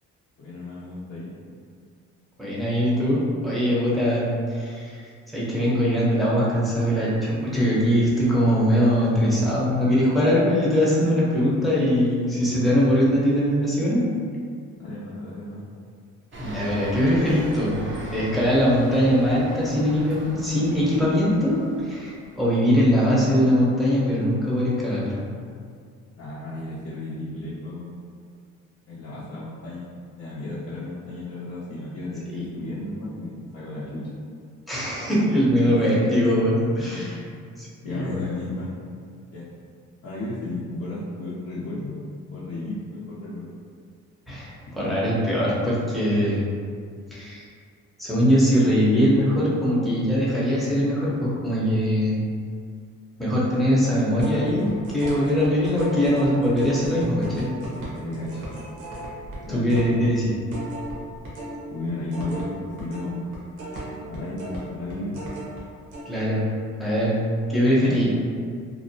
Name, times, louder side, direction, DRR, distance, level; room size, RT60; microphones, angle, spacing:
voice 1, 0.4-1.3 14.8-15.6 26.2-27.9 28.9-29.9 30.2-34.1 35.2-35.8 37.8-38.7 39.3-39.5 40.0-42.0 42.3-43.5 57.9-58.5 59.4-59.8 61.7-63.3 64.1-65.2 67.8-68.0, left 2 dB, 50° left, -9 dB, 0.6 m, -33 dB
voice 2, 2.4-5.0 5.3-14.0 16.4-17.8 18.1-25.2 32.3-32.4 34.7-37.2 37.6-38.3 44.3-46.4 47.1-47.4 48.0-52.2 53.2-57.5 59.5-60.3 66.0-66.4 66.8-67.2 67.5-68.1, equal, ahead, -8 dB, 0.7 m, -21 dB
sound 1, 16.3-22.6, right 2 dB, 40° right, 0.6 m, -38 dB
sound 2, 54.2-61.6 61.9-65.6 65.9-66.0, right 1 dB, 85° right, 0.8 m, -36 dB
2.7 x 2.0 x 2.6 m, 2.2 s
cardioid pair, 90°, 30 cm